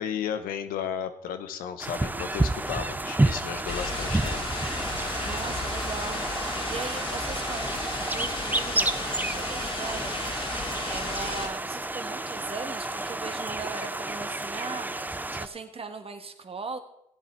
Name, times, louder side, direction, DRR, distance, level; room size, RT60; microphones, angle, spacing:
voice 1, 0.0-4.4, left 8 dB, 80° left, 10 dB, 0.8 m, -34 dB
sound 1, 1.8-15.5, right 2 dB, 10° right, 0.6 m, -30 dB
sound 2, 3.7-11.5, left 2 dB, 40° left, 2.2 m, -34 dB
voice 2, 5.2-10.5 10.9-16.8, right 4 dB, 40° right, 7 dB, 1.4 m, -39 dB
15.0 x 8.2 x 4.4 m, 0.80 s
supercardioid pair, 50°, 14 cm